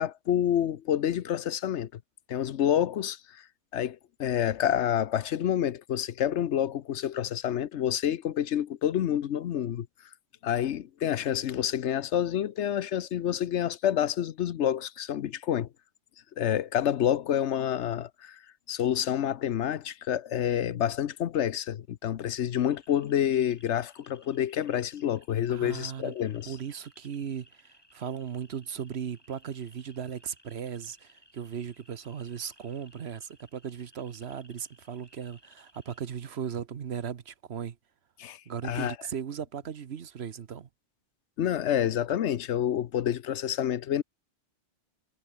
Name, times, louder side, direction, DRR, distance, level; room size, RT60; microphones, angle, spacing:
voice 1, 0.0-1.9 2.3-3.4 3.7-9.9 10.4-15.7 16.4-18.4 18.7-26.6 38.2-39.0 41.4-44.0, left 10 dB, 75° left, 1.0 m, -28 dB
sound 1, 22.6-36.0, left 1 dB, 20° left, 6.6 m, -60 dB
voice 2, 25.5-26.1 26.5-37.8 38.5-40.7, right 8 dB, 65° right, 1.2 m, -37 dB
omnidirectional pair, 1.2 m